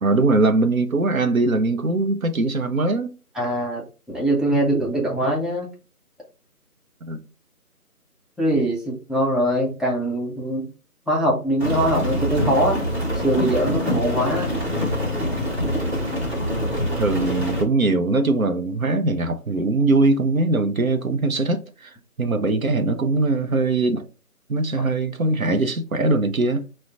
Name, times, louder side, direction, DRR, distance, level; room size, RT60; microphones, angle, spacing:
voice 1, 0.0-3.1 7.0-7.2 17.0-24.1 24.5-26.6, right 2 dB, 65° right, 0.5 m, -21 dB
voice 2, 3.3-3.8 4.1-5.7 8.4-10.7 11.1-12.8 13.2-14.5, right 1 dB, ahead, 0.5 m, -22 dB
Rain, 11.6-17.6, equal, 45° right, 1.3 m, -25 dB
4.4 x 2.1 x 2.4 m
figure-of-eight pair, 175°, 46 cm